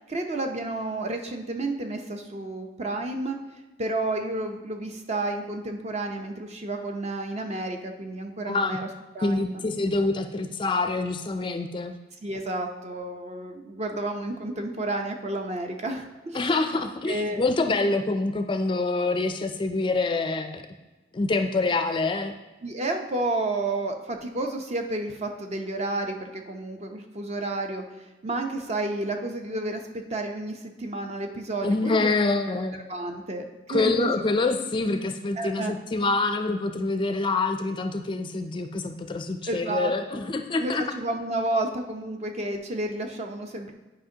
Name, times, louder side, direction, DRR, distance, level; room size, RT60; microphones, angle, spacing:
voice 1, 0.1-3.4 3.8-8.9 9.1-9.6 12.2-16.5 17.1-17.4 22.6-27.8 28.2-29.8 30.1-32.3 32.9-34.1 35.4-35.7 39.4-40.2 40.5-43.7, right 2 dB, 40° right, 4 dB, 0.6 m, -31 dB
voice 2, 8.5-8.8 9.2-12.0 16.3-20.6 21.1-22.3 31.6-32.8 33.7-40.8, left 3 dB, 30° left, 7 dB, 0.4 m, -26 dB
9.7 x 5.1 x 2.8 m, 1.1 s
head